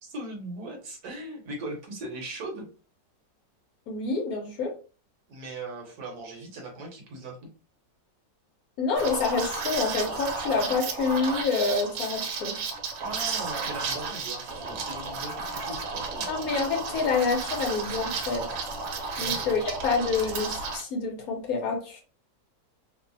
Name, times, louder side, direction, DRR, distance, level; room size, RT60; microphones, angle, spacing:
voice 1, 0.0-2.7 5.3-7.5 13.0-16.3 19.1-19.4, right 2 dB, 65° right, 1 dB, 1.2 m, -39 dB
voice 2, 3.9-4.7 8.8-12.6 16.3-18.5 19.2-22.0, left 4 dB, 65° left, 2 dB, 1.0 m, -27 dB
Liquid, 9.0-20.8, right 4 dB, 85° right, 1.3 m, -33 dB
3.0 x 2.0 x 2.5 m, 0.36 s
omnidirectional pair, 1.9 m